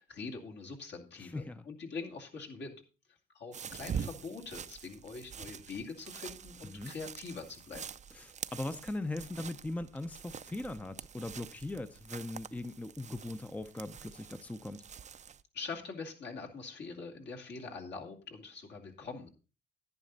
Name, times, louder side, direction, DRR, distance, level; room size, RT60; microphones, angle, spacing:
voice 1, 0.0-2.8 3.1-7.8 15.5-19.3, left 4 dB, 60° left, 0 dB, 2.5 m, -44 dB
voice 2, 1.2-1.6 6.6-6.9 8.1-14.8, left 2 dB, 5° left, 11 dB, 0.6 m, -40 dB
sound 1, 3.5-15.4, right 7 dB, 35° right, 0.5 m, -45 dB
10.5 x 10.5 x 4.0 m, 0.34 s
cardioid pair, 90°, 20 cm